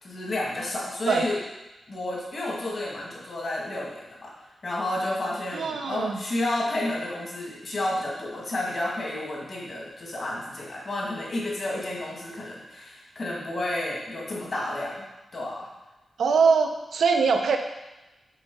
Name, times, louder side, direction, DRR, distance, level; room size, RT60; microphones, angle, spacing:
voice 1, 0.0-1.4 1.9-15.1 15.3-15.7, left 1 dB, 40° left, -4 dB, 1.9 m, -31 dB
voice 2, 5.5-6.2 16.2-17.6, right 5 dB, 85° right, 5 dB, 0.7 m, -22 dB
7.0 x 3.7 x 5.4 m, 1.0 s
wide cardioid pair, 155°, 0 cm